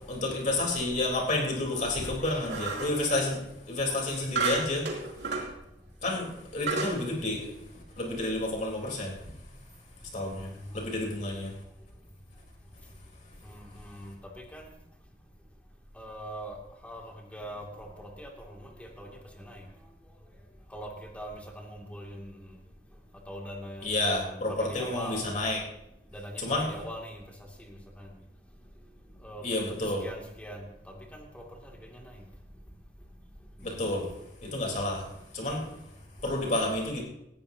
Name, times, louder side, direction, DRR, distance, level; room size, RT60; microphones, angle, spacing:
voice 1, 0.1-3.4 3.7-4.9 6.0-7.5 8.0-9.1 10.1-10.5 10.7-11.5 23.8-25.6 26.4-26.7 29.4-30.0 33.6-34.1 34.4-35.1 35.3-35.6 36.2-37.0, left 2 dB, 45° left, -1 dB, 3.9 m, -30 dB
sound 1, 2.5-3.0 4.4-5.5 6.0-6.1 6.7-7.0, right 4 dB, 75° right, 3.0 m, -31 dB
voice 2, 13.5-14.6 16.0-16.6 16.8-17.0 17.3-19.6 20.7-22.5 23.3-25.2 26.1-27.2 27.7-28.1 29.2-30.6 31.1-31.4 32.0-32.1 33.7-33.9, equal, 10° left, 0 dB, 2.5 m, -42 dB
18.5 x 14.0 x 2.9 m, 0.87 s
head